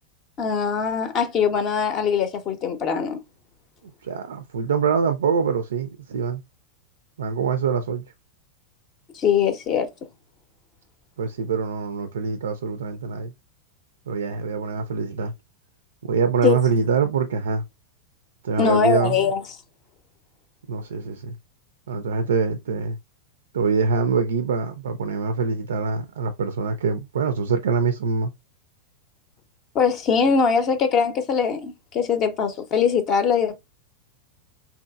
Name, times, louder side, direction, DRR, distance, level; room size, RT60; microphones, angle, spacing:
voice 1, 0.4-3.2 9.1-9.9 16.4-16.6 18.6-19.4 29.7-33.6, left 6 dB, 35° left, 0.6 m, -22 dB
voice 2, 4.0-6.4 7.2-8.0 11.2-13.3 14.1-15.3 16.0-17.6 18.4-19.2 20.7-21.4 21.9-23.0 23.5-28.3, right 5 dB, 65° right, 0.3 m, -24 dB
3.6 x 2.9 x 2.3 m
figure-of-eight pair, 90°, 0 cm